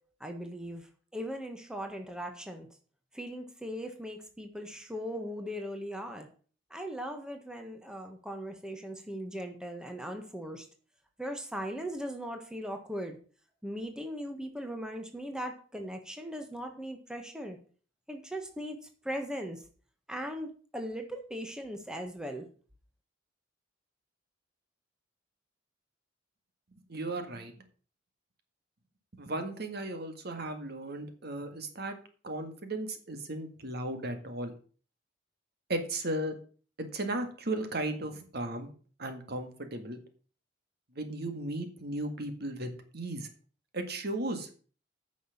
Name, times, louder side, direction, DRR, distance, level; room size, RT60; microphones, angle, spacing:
voice 1, 0.2-2.7 3.1-6.3 6.7-10.7 11.2-13.2 13.6-17.6 18.1-18.8 19.0-19.6 20.1-22.5, equal, 5° right, 4 dB, 1.5 m, -39 dB
voice 2, 26.9-27.5 29.2-31.9 32.2-34.5 35.7-36.3 36.9-38.7 39.0-40.0 40.9-43.3 43.7-44.5, right 1 dB, 60° right, 7 dB, 1.9 m, -35 dB
9.4 x 6.3 x 7.2 m, 0.41 s
head